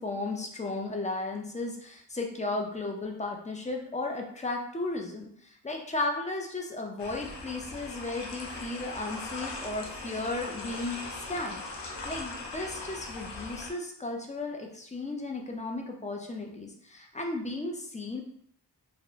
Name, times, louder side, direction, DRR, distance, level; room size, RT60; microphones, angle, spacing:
voice 1, 0.0-11.0 11.3-18.2, left 2 dB, 20° left, 2 dB, 0.4 m, -35 dB
sound 1, 7.0-13.7, left 3 dB, 75° left, 0.6 m, -40 dB
2.5 x 2.1 x 2.8 m, 0.67 s
wide cardioid pair, 65°, 42 cm